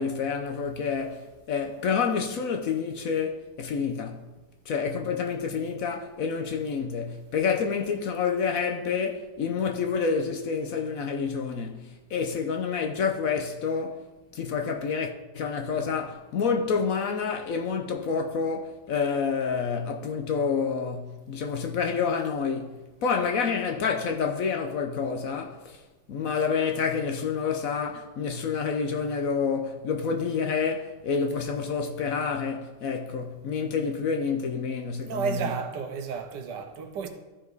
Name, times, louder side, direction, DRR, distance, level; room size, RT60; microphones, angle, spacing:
voice 1, 0.0-4.2 4.7-14.1 14.3-25.8 26.1-35.4, left 5 dB, 60° left, 1.0 m, -28 dB
voice 2, 35.0-37.1, right 6 dB, 85° right, 1.5 m, -32 dB
13.5 x 4.8 x 4.0 m
omnidirectional pair, 1.9 m